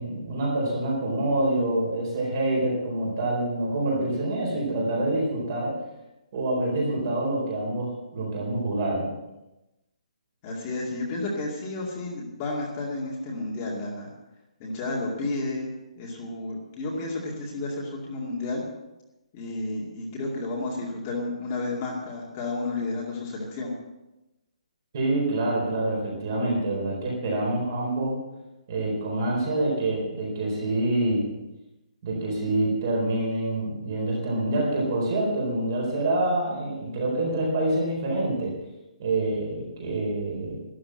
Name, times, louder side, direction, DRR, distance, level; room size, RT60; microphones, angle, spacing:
voice 1, 0.0-5.8 6.3-9.1 24.9-28.2 28.7-31.3 32.0-38.6 39.0-40.6, right 2 dB, 30° right, -2 dB, 4.2 m, -26 dB
voice 2, 10.4-14.1 14.6-15.7 16.0-18.6 19.3-23.7, left 2 dB, 15° left, -3 dB, 2.3 m, -31 dB
13.0 x 11.5 x 7.7 m, 0.97 s
hypercardioid pair, 180°, 4 cm